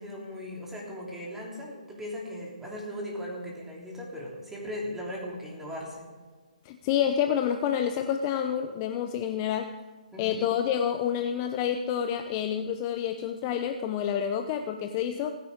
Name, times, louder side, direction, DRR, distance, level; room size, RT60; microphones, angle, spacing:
voice 1, 0.0-6.1 10.1-10.3, left 1 dB, 5° right, -3 dB, 3.4 m, -38 dB
voice 2, 6.6-9.7 10.2-15.4, left 9 dB, 25° left, 6 dB, 0.7 m, -28 dB
29.0 x 10.5 x 3.7 m, 1.4 s
figure-of-eight pair, 135°, 4 cm